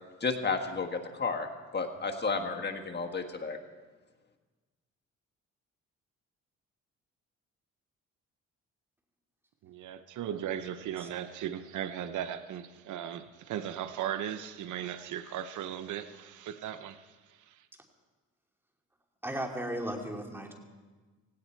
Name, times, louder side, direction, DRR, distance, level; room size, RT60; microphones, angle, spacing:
voice 1, 0.2-1.5 1.7-3.6, left 4 dB, 35° left, 4 dB, 1.6 m, -32 dB
voice 2, 9.6-17.1, right 10 dB, 75° right, 11 dB, 0.9 m, -37 dB
voice 3, 19.2-20.5, right 1 dB, 5° right, 2 dB, 2.6 m, -35 dB
17.5 x 17.5 x 4.5 m, 1.3 s
cardioid pair, 90°, 30 cm